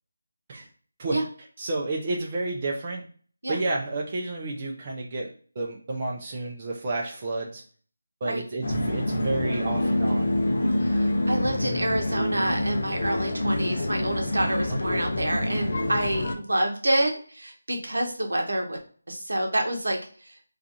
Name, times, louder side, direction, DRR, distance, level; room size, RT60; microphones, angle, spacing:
voice 1, 1.6-3.0 3.5-5.3 5.6-7.6 8.2-10.3 14.7-15.0, right 2 dB, 30° right, -1 dB, 0.4 m, -30 dB
sound 1, 8.6-16.3, left 1 dB, 55° left, 0.5 m, -26 dB
voice 2, 10.8-18.8 19.1-20.0, right 1 dB, 75° right, 2 dB, 0.7 m, -27 dB
2.4 x 2.4 x 2.6 m, 0.43 s
figure-of-eight pair, 160°, 0 cm